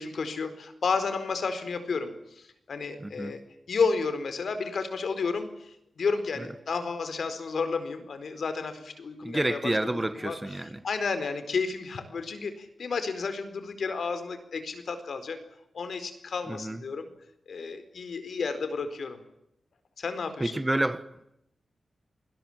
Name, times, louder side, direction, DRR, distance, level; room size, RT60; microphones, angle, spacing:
voice 1, 0.0-3.4 3.7-10.4 10.8-15.4 15.7-17.1 17.5-19.2 20.0-20.6, left 4 dB, 65° left, 4.4 m, -32 dB
voice 2, 3.0-3.3 6.4-6.5 9.2-10.8 16.5-16.8 20.4-21.1, right 1 dB, 15° right, 1.4 m, -29 dB
28.5 x 21.0 x 7.4 m
wide cardioid pair, 115°, 0 cm